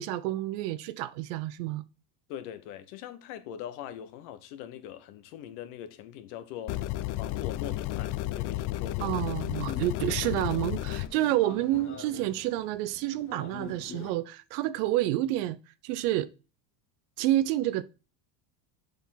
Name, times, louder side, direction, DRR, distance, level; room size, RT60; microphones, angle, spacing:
voice 1, 0.0-1.8 9.0-15.6 15.8-16.3 17.2-17.8, right 14 dB, 75° right, 0.6 m, -29 dB
voice 2, 2.3-9.1, left 10 dB, 70° left, 1.2 m, -42 dB
sound 1, 6.7-11.1, left 15 dB, 45° left, 0.4 m, -32 dB
sound 2, 9.1-14.1, left 6 dB, 25° left, 1.1 m, -46 dB
7.2 x 3.9 x 5.7 m
supercardioid pair, 140°, 47 cm